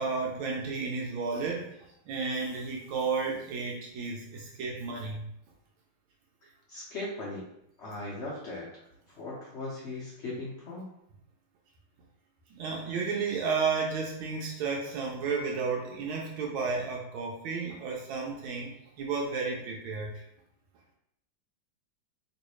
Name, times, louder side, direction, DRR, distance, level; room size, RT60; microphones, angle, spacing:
voice 1, 0.0-1.6 2.1-5.2 12.5-20.1, right 4 dB, 80° right, -1 dB, 1.4 m, -32 dB
voice 2, 6.4-7.4 7.8-8.7 9.1-10.9, left 2 dB, 75° left, -6 dB, 0.6 m, -38 dB
3.1 x 3.0 x 3.0 m, 0.76 s
omnidirectional pair, 2.2 m